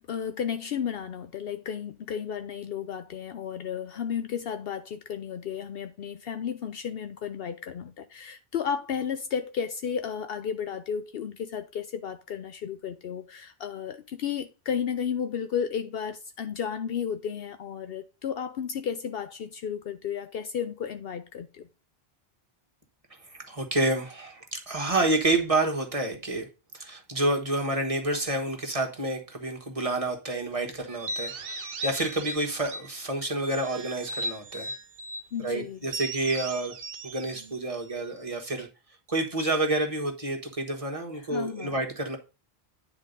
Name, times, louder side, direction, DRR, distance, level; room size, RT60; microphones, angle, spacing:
voice 1, 0.0-21.7 35.3-35.8 41.1-41.8, left 7 dB, 70° left, 0.8 m, -33 dB
voice 2, 23.3-26.5 26.7-34.7 35.4-36.8 37.0-38.7 39.1-42.2, right 2 dB, 35° right, 1.4 m, -29 dB
sound 1, 30.9-33.0 33.4-35.3 35.9-38.4, right 1 dB, 70° right, 1.0 m, -37 dB
9.7 x 4.0 x 5.3 m
omnidirectional pair, 1.0 m